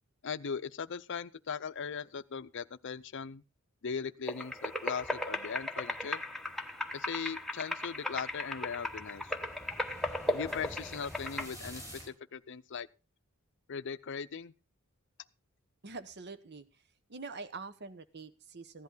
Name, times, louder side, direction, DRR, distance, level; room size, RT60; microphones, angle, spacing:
voice 1, 0.2-3.4 3.8-6.2 6.9-9.4 10.3-12.9 13.7-14.5, left 6 dB, 55° left, 0.6 m, -39 dB
sound 1, 4.3-11.5, left 1 dB, ahead, 0.9 m, -37 dB
sound 2, 4.5-12.1, equal, 15° right, 4.8 m, -52 dB
voice 2, 15.8-16.8 17.1-18.8, right 4 dB, 50° right, 0.9 m, -45 dB
15.5 x 11.0 x 3.9 m
head